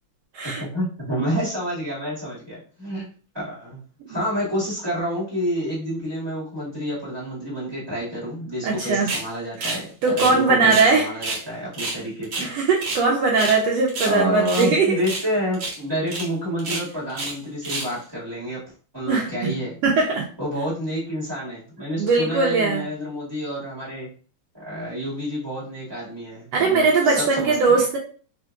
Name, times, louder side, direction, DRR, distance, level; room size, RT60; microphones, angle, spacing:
voice 1, 0.4-3.1 3.3-3.8 4.1-12.5 14.0-18.6 18.9-19.7 20.4-24.1 24.5-27.7, equal, 10° right, -9 dB, 1.3 m, -29 dB
voice 2, 8.6-9.1 9.6-11.1 12.4-15.0 19.1-19.5 19.8-20.3 22.0-22.9 26.5-28.0, right 4 dB, 80° right, -2 dB, 1.4 m, -20 dB
sound 1, 9.1-9.3 9.6-9.8 10.1-10.9 11.2-11.4 11.7-13.1 13.3-13.6 13.9-14.7 15.0-15.3 15.5-15.8 16.1-16.3 16.6-17.4 17.6-18.0, right 2 dB, 60° right, 1.3 m, -29 dB
4.4 x 3.6 x 2.4 m, 0.40 s
omnidirectional pair, 3.7 m